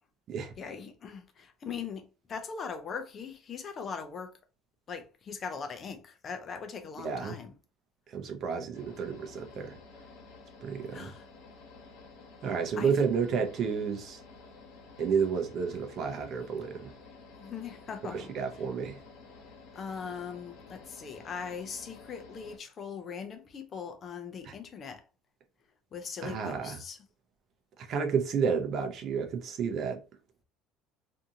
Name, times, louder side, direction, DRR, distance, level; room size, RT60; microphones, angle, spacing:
voice 1, 0.6-4.4 4.9-7.5 10.9-11.3 12.8-12.9 17.4-18.3 19.7-25.0 25.9-27.0, left 6 dB, 30° left, 0.5 m, -40 dB
voice 2, 7.0-7.4 8.1-9.8 10.6-11.1 12.4-14.2 15.0-16.9 18.1-19.0 24.4-24.5 26.2-26.8 27.8-30.0, right 6 dB, 45° right, 0.6 m, -31 dB
sound 1, 8.7-22.6, left 4 dB, 80° left, 1.1 m, -52 dB
2.6 x 2.5 x 2.7 m
cardioid pair, 140°, 0 cm